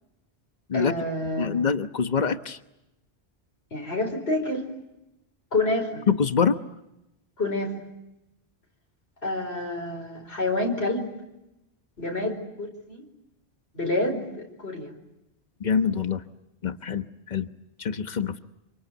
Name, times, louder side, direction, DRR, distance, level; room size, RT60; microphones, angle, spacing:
voice 1, 0.7-1.6 3.7-4.6 5.5-6.0 7.4-7.8 9.2-11.1 12.0-13.0 13.7-14.9, left 2 dB, 85° left, 2 dB, 5.1 m, -28 dB
voice 2, 1.4-2.6 6.1-6.6 15.6-16.2 16.6-17.5 17.8-18.4, left 6 dB, 45° left, 9 dB, 1.2 m, -25 dB
27.0 x 26.0 x 8.2 m, 0.91 s
omnidirectional pair, 1.0 m